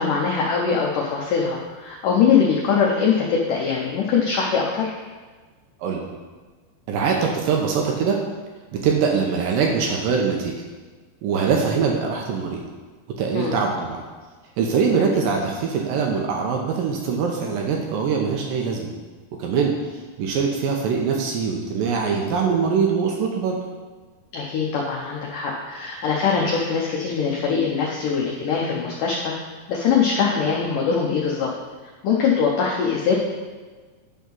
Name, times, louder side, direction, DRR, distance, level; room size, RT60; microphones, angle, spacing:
voice 1, 0.0-4.9 13.3-13.6 15.0-15.2 24.3-29.3 29.7-31.5 32.0-33.1, left 6 dB, 90° left, -2 dB, 1.8 m, -22 dB
voice 2, 6.9-8.2 8.8-10.5 11.2-12.6 13.2-14.0 14.6-18.9 19.4-23.6, right 5 dB, 85° right, 0 dB, 2.0 m, -23 dB
11.0 x 3.7 x 6.0 m, 1.4 s
omnidirectional pair, 5.1 m